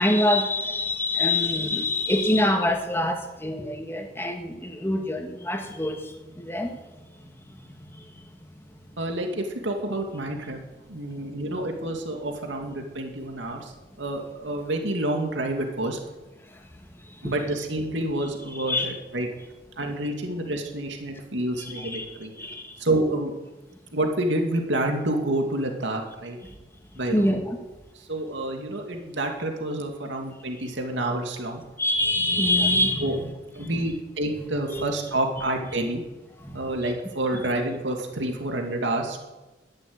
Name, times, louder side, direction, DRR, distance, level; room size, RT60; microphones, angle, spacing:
voice 1, 0.0-6.8 17.2-17.3 18.5-18.9 21.6-22.1 22.4-22.7 27.1-27.6 31.8-33.2 33.6-33.9 34.7-34.8 36.4-36.6, left 1 dB, 15° left, 3 dB, 2.0 m, -25 dB
voice 2, 9.0-10.6 10.9-13.7 14.0-16.0 17.2-19.3 19.8-22.3 22.8-23.3 23.9-26.4 27.0-27.3 28.1-31.6 33.0-33.1 33.6-36.0 36.5-39.2, right 1 dB, 85° right, 2 dB, 2.5 m, -28 dB
13.5 x 10.5 x 9.6 m, 1.1 s
head